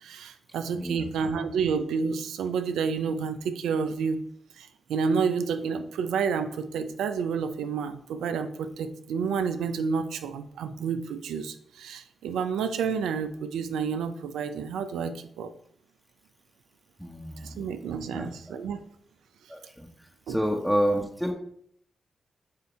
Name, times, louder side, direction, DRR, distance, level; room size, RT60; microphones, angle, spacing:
voice 1, 0.0-4.3 4.6-15.5 17.4-18.8 20.3-20.4, right 6 dB, 85° right, 9 dB, 0.5 m, -30 dB
voice 2, 0.7-1.1 17.0-17.7 18.1-18.5 19.5-19.9 20.3-21.3, equal, ahead, 1 dB, 1.1 m, -29 dB
8.0 x 2.7 x 4.8 m, 0.65 s
supercardioid pair, 45°, 0 cm